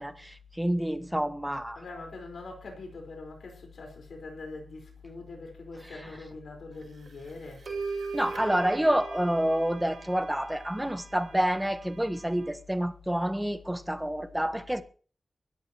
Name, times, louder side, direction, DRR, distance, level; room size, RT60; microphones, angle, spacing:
voice 1, 0.0-1.8 8.1-14.8, right 1 dB, 10° right, 1.3 m, -28 dB
voice 2, 1.8-7.7, left 3 dB, 90° left, 4.7 m, -43 dB
sound 1, 7.1-7.2 7.7-12.5, right 4 dB, 70° right, 5.2 m, -40 dB
22.0 x 13.5 x 3.1 m
wide cardioid pair, 85°, 0 cm